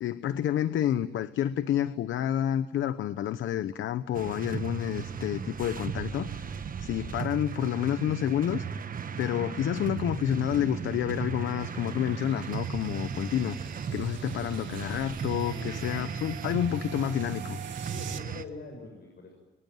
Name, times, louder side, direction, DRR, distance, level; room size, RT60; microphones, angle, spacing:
voice 1, 0.0-8.6 9.2-17.6, left 11 dB, 75° left, 13 dB, 1.0 m, -29 dB
sound 1, 4.1-18.5, right 6 dB, 45° right, 1.5 m, -36 dB
sound 2, 10.5-18.2, right 9 dB, 70° right, 2.2 m, -47 dB
voice 2, 15.4-16.0 17.9-19.3, left 2 dB, 55° left, 1 dB, 7.5 m, -44 dB
24.0 x 24.0 x 9.2 m, 1.2 s
cardioid pair, 90°, 20 cm